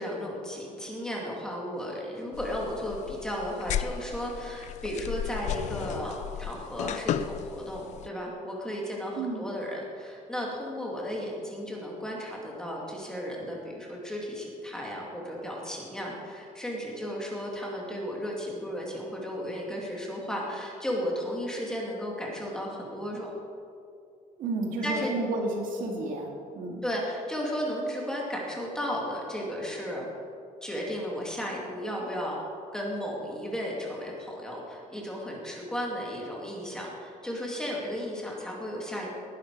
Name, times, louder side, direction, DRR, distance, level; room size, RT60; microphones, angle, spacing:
voice 1, 0.0-23.3 24.8-25.1 26.8-30.1 30.6-32.4 32.7-39.1, equal, 5° left, -3 dB, 2.2 m, -34 dB
sound 1, 2.3-8.1, left 10 dB, 50° left, 0.4 m, -35 dB
voice 2, 24.4-26.3 26.5-26.8, right 2 dB, 60° right, 1 dB, 2.3 m, -31 dB
19.0 x 11.0 x 4.7 m, 2.6 s
cardioid pair, 175°, 15 cm